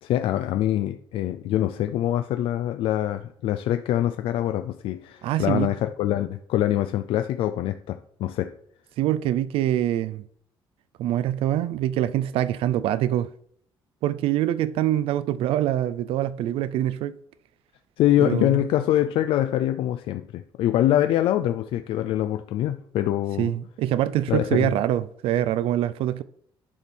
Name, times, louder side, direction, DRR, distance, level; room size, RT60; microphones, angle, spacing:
voice 1, 0.0-8.5 18.0-23.5 24.3-24.7, left 12 dB, 80° left, 0.4 m, -24 dB
voice 2, 5.2-5.7 9.0-10.2 11.0-13.3 14.0-17.2 18.2-18.6 23.4-26.2, right 12 dB, 85° right, 0.4 m, -24 dB
10.0 x 4.3 x 6.1 m
cardioid pair, 165°, 9 cm